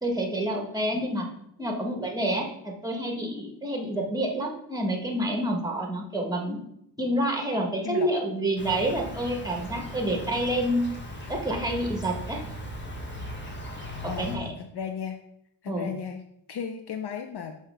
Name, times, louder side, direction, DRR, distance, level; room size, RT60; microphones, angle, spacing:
voice 1, 0.0-1.3 1.6-6.6 7.0-10.9 11.3-12.4 14.2-14.5 15.7-15.9, right 1 dB, 10° right, 1 dB, 1.1 m, -28 dB
Insect, 8.6-14.4, left 1 dB, 25° left, 0.9 m, -38 dB
voice 2, 14.1-15.2 15.6-16.2 16.5-17.6, left 7 dB, 65° left, 6 dB, 0.5 m, -35 dB
5.6 x 3.1 x 5.4 m, 0.75 s
wide cardioid pair, 110°, 42 cm